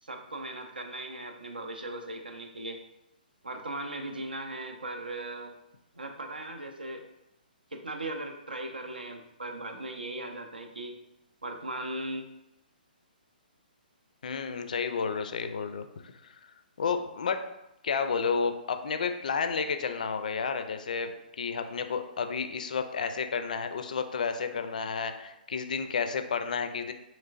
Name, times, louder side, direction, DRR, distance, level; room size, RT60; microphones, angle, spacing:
voice 1, 0.0-2.8 3.4-5.5 5.9-7.0 7.7-10.9 11.4-12.2, right 1 dB, 70° right, 5 dB, 0.5 m, -38 dB
voice 2, 14.2-16.4 16.8-17.4 17.8-26.9, left 5 dB, 55° left, 8 dB, 0.3 m, -31 dB
4.4 x 3.1 x 2.4 m, 0.88 s
figure-of-eight pair, 125°, 5 cm